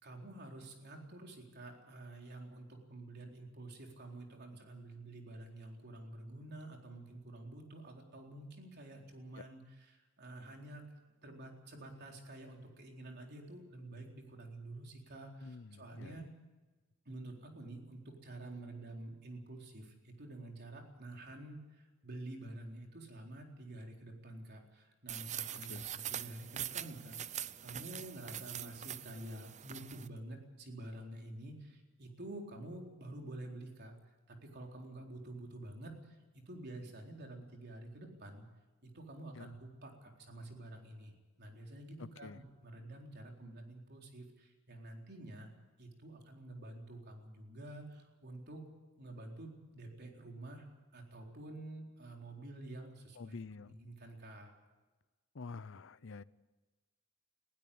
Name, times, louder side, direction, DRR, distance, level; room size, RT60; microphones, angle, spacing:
voice 1, 0.0-10.8 11.2-16.3 17.0-38.4 38.8-41.1 41.4-45.5 45.8-48.6 49.0-50.7 50.9-53.3 53.6-54.5, right 1 dB, 55° right, 1 dB, 4.1 m, -49 dB
voice 2, 15.4-16.3 25.6-25.9 39.4-39.5 42.0-42.4 53.2-53.8 55.3-56.2, left 4 dB, 65° left, 18 dB, 0.7 m, -48 dB
sound 1, 25.1-30.1, right 10 dB, 35° right, 0.6 m, -43 dB
20.5 x 16.0 x 8.6 m, 1.2 s
head